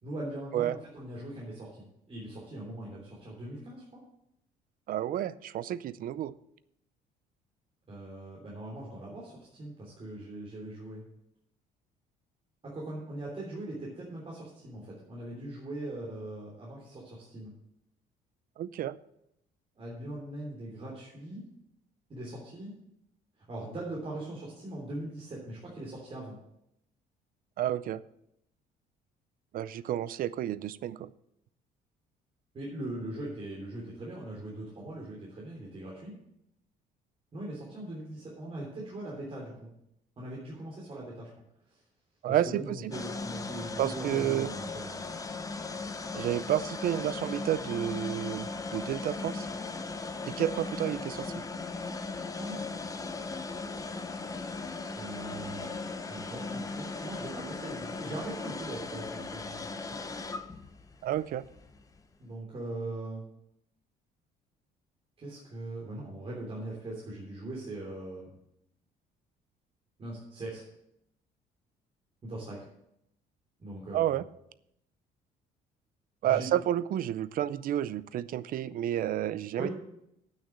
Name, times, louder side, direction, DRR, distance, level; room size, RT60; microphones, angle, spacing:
voice 1, 0.0-4.0 7.9-11.0 12.6-17.5 19.7-21.4 22.1-22.7 23.4-26.4 32.5-36.1 37.3-39.7 40.2-41.3 41.7-41.8 42.3-45.1 52.4-52.6 54.9-55.8 56.1-60.0 62.2-63.2 65.2-68.4 70.0-70.6 72.2-72.7 73.6-74.2 76.2-76.5 79.6-79.7, right 1 dB, 35° right, -4 dB, 3.3 m, -40 dB
voice 2, 4.9-6.3 18.6-19.0 27.6-28.0 29.5-31.1 42.2-42.9 43.8-44.5 46.1-49.5 50.3-51.4 61.0-61.4 73.9-74.2 76.2-79.7, right 12 dB, 55° right, 18 dB, 0.5 m, -30 dB
sound 1, 42.9-62.0, left 3 dB, 20° left, 0.8 m, -38 dB
8.8 x 6.4 x 8.2 m, 0.79 s
cardioid pair, 110°, 17 cm